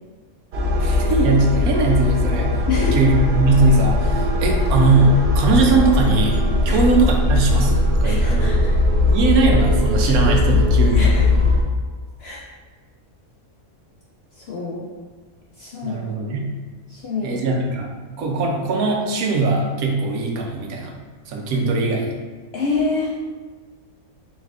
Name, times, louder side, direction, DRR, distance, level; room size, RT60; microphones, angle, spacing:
sound 1, 0.5-11.6, left 2 dB, 65° right, 0.7 m, -19 dB
voice 1, 0.8-8.6 9.0-11.1 15.8-16.5 17.2-17.9 18.2-21.0 21.3-22.1, right 3 dB, 85° right, 1 dB, 1.1 m, -20 dB
voice 2, 2.7-3.0 6.7-6.8 8.0-8.7 10.9-11.4 12.2-12.4 14.4-14.8 15.6-16.0 16.9-17.4 22.5-23.1, left 4 dB, 70° left, -4 dB, 0.6 m, -26 dB
4.4 x 3.3 x 2.4 m, 1.4 s
omnidirectional pair, 1.5 m